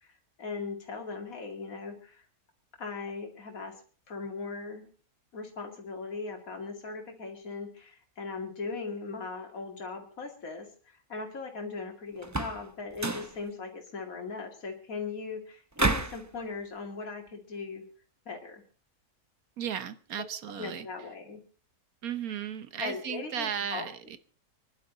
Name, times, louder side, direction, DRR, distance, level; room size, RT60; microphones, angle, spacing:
voice 1, 0.0-2.2 2.8-3.7 4.1-4.9 5.3-17.8 18.3-18.6 20.5-21.4 22.8-23.9, left 4 dB, 65° left, 2 dB, 2.8 m, -39 dB
sound 1, 12.2-12.6 12.9-13.3 15.8-16.2, right 2 dB, 15° right, 0.6 m, -29 dB
voice 2, 19.6-20.9 22.0-24.2, right 8 dB, 75° right, 13 dB, 1.5 m, -35 dB
26.0 x 11.5 x 3.9 m, 0.39 s
omnidirectional pair, 1.6 m